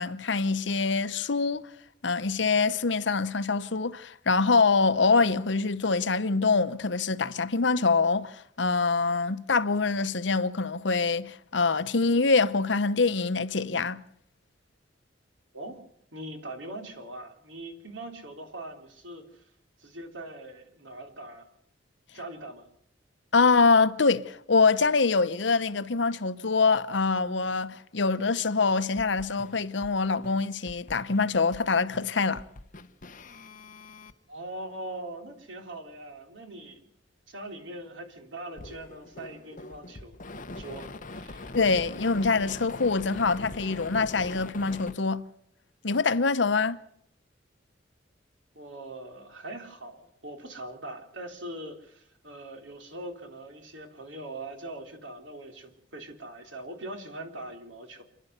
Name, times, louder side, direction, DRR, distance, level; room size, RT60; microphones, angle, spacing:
voice 1, 0.0-1.6 2.0-14.0 23.3-32.4 41.5-45.2 45.8-46.8, left 4 dB, 70° left, 0.9 m, -25 dB
voice 2, 15.5-15.8 16.1-19.5 19.8-21.5 22.1-22.7 34.3-36.9 37.3-40.1 40.6-41.6 48.5-58.0, right 1 dB, 75° right, 3.7 m, -41 dB
sound 1, 28.6-30.0 30.2-31.7 31.9-34.1 38.6-44.9, left 2 dB, 45° left, 1.1 m, -43 dB
29.5 x 11.0 x 8.1 m
head